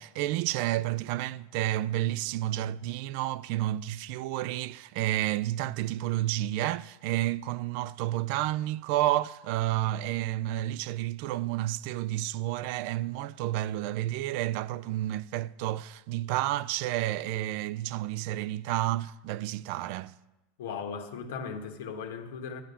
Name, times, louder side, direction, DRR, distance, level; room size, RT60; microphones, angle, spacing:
voice 1, 0.0-20.1, right 14 dB, 60° right, 0.4 m, -30 dB
voice 2, 20.6-22.6, left 6 dB, 80° left, 1.6 m, -37 dB
12.0 x 8.9 x 7.0 m
supercardioid pair, 135°, 0 cm